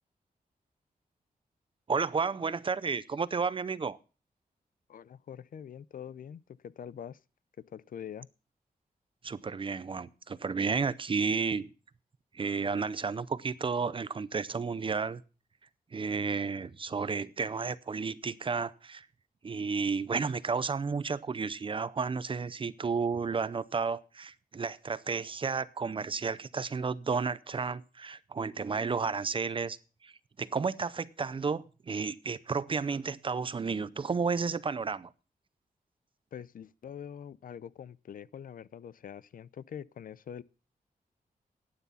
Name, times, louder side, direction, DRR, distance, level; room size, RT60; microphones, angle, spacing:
voice 1, 1.9-4.0 9.2-11.7 12.3-15.2 15.9-19.1 19.4-29.8 30.0-30.1 30.4-35.1, right 5 dB, 35° right, 0.5 m, -32 dB
voice 2, 4.9-7.2 7.7-8.3 36.3-40.4, left 8 dB, 70° left, 0.5 m, -44 dB
12.0 x 9.7 x 5.6 m
wide cardioid pair, 180°, 15 cm